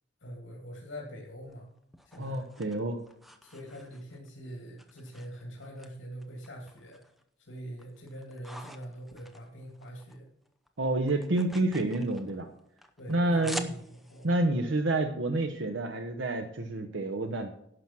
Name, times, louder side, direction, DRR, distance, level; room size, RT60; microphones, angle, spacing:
voice 1, 0.2-1.7 2.0-2.4 3.4-7.0 7.4-10.3 13.0-14.3, equal, 85° left, -2 dB, 2.6 m, -44 dB
sound 1, 1.4-4.3 4.8-5.9 6.2-7.2 7.6-10.2 10.5-14.3, equal, ahead, 0.7 m, -46 dB
voice 2, 2.2-3.0 10.8-12.5 13.1-13.7 14.2-17.5, right 2 dB, 85° right, 5 dB, 0.9 m, -28 dB
11.0 x 6.2 x 6.1 m, 0.72 s
head